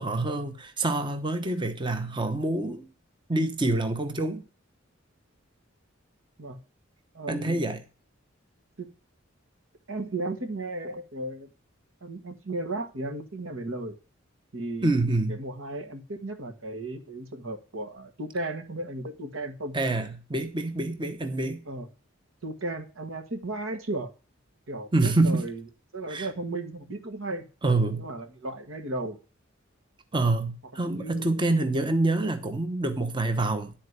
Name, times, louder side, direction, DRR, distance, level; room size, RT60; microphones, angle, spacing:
voice 1, 0.0-2.9 3.3-4.4 7.3-7.8 14.8-15.4 19.7-21.6 24.9-25.5 26.1-26.3 27.6-28.0 30.1-33.7, right 2 dB, 25° right, 0.9 m, -26 dB
voice 2, 7.1-7.6 8.8-8.9 9.9-11.5 12.0-13.9 14.5-14.9 15.3-19.7 21.7-21.9 22.4-24.1 24.7-25.6 25.9-27.4 28.0-29.2 30.8-31.4, right 2 dB, 85° right, 1.6 m, -35 dB
11.0 x 4.4 x 8.0 m
head